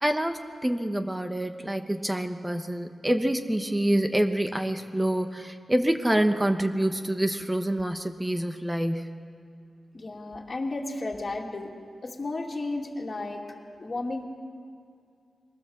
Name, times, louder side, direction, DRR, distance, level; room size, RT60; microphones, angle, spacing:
voice 1, 0.0-9.1, right 1 dB, 10° right, 7 dB, 1.1 m, -26 dB
voice 2, 9.9-11.7 12.0-13.5 13.8-14.2, left 2 dB, 35° left, -1 dB, 2.6 m, -33 dB
23.5 x 18.0 x 7.3 m, 2.3 s
wide cardioid pair, 105°, 0 cm